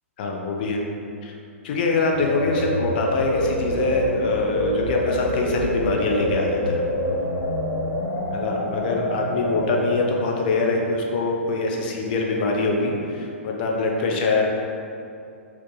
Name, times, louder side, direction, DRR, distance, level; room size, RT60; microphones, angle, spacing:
voice 1, 0.2-0.8 1.2-1.3 1.6-6.8 8.3-14.4, left 3 dB, 45° left, 0 dB, 0.5 m, -24 dB
sound 1, 2.1-10.0, left 1 dB, 75° left, 1.1 m, -26 dB
6.0 x 2.7 x 2.2 m, 2.6 s
figure-of-eight pair, 110°, 7 cm